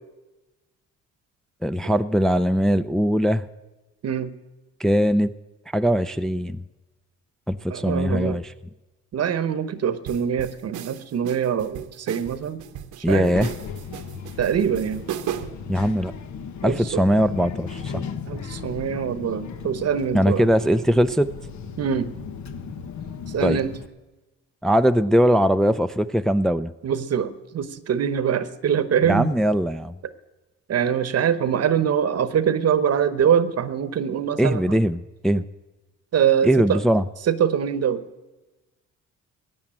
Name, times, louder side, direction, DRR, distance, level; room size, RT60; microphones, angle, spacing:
voice 1, 1.6-3.5 4.8-5.3 5.7-6.6 7.5-8.5 13.0-13.5 15.7-16.1 16.6-18.0 20.1-21.3 23.4-23.6 24.6-26.7 29.0-29.9 34.4-35.4 36.4-37.1, equal, ahead, 10 dB, 0.5 m, -20 dB
voice 2, 7.7-8.4 9.1-12.6 13.0-13.3 14.4-15.0 16.6-17.0 18.3-20.5 21.8-22.1 23.3-23.7 26.8-29.3 30.7-34.8 36.1-36.8 37.2-38.0, right 8 dB, 55° right, 13 dB, 1.0 m, -23 dB
sound 1, 10.1-15.7, right 10 dB, 85° right, 1.0 m, -35 dB
Child speech kid speaking, 13.1-23.9, left 6 dB, 70° left, 1.4 m, -36 dB
16.0 x 9.5 x 8.9 m, 1.1 s
cardioid pair, 90°, 30 cm